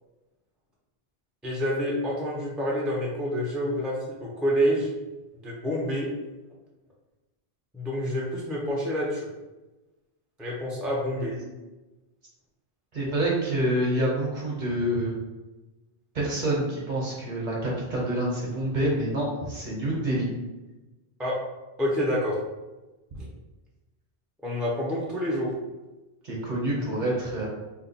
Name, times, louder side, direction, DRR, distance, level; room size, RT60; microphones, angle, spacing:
voice 1, 1.4-4.9 5.3-6.1 7.7-9.3 10.4-11.3 21.2-21.4 21.8-22.4 24.4-25.5, equal, ahead, -5 dB, 0.4 m, -27 dB
voice 2, 12.9-15.2 16.1-20.3 26.2-27.5, right 1 dB, 50° right, -3 dB, 0.9 m, -27 dB
2.7 x 2.3 x 3.9 m, 1.1 s
omnidirectional pair, 1.1 m